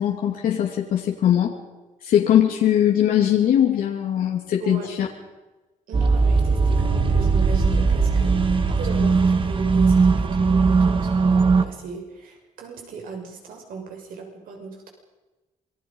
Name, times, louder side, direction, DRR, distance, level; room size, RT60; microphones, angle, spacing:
voice 1, 0.0-1.6 2.0-5.1, left 10 dB, 85° left, -1 dB, 2.7 m, -20 dB
sound 1, 5.9-11.6, right 4 dB, 40° right, 2.2 m, -19 dB
voice 2, 5.9-8.4 8.7-14.9, right 4 dB, 85° right, 1 dB, 6.9 m, -37 dB
27.5 x 22.5 x 5.5 m, 1.1 s
cardioid pair, 115°, 14 cm